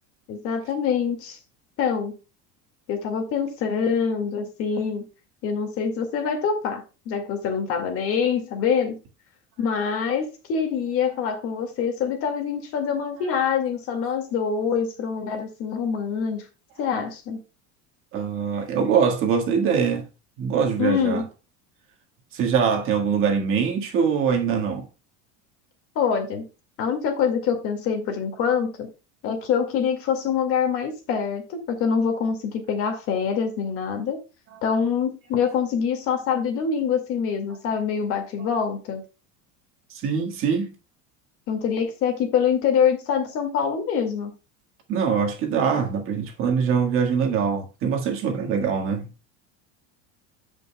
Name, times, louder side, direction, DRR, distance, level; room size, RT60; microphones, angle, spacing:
voice 1, 0.3-1.4 1.8-2.2 2.9-5.0 5.4-9.0 9.6-16.4 16.8-17.4 20.8-21.2 26.0-26.5 26.8-28.9 29.2-34.2 34.6-39.0 41.5-44.3, left 7 dB, 40° left, 2.0 m, -25 dB
voice 2, 18.1-20.0 20.4-21.2 22.3-24.9 39.9-40.7 44.9-49.1, right 6 dB, 35° right, 1.6 m, -23 dB
15.5 x 5.4 x 2.2 m
cardioid pair, 175°, 36 cm